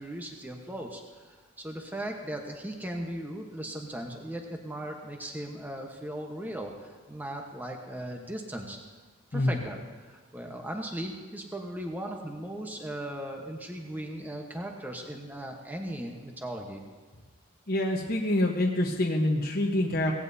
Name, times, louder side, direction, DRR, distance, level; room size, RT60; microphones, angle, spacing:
voice 1, 0.0-8.8 9.3-16.8, right 1 dB, 10° right, 2 dB, 1.1 m, -38 dB
voice 2, 17.7-20.1, left 1 dB, 45° left, -1 dB, 1.1 m, -26 dB
18.0 x 16.0 x 2.8 m, 1.5 s
head